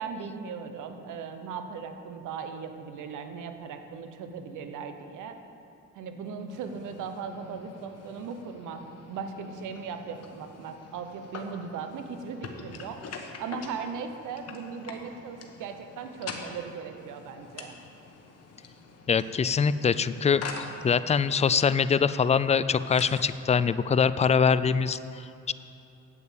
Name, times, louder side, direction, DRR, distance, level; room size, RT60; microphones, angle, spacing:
voice 1, 0.0-5.4 5.9-13.0 13.4-17.8, right 6 dB, 80° right, 7 dB, 1.0 m, -38 dB
sound 1, 6.5-23.6, left 4 dB, 55° left, 1.3 m, -45 dB
voice 2, 19.1-25.5, left 6 dB, 25° left, 15 dB, 0.3 m, -24 dB
8.6 x 8.2 x 7.3 m, 2.8 s
cardioid pair, 90°, 30 cm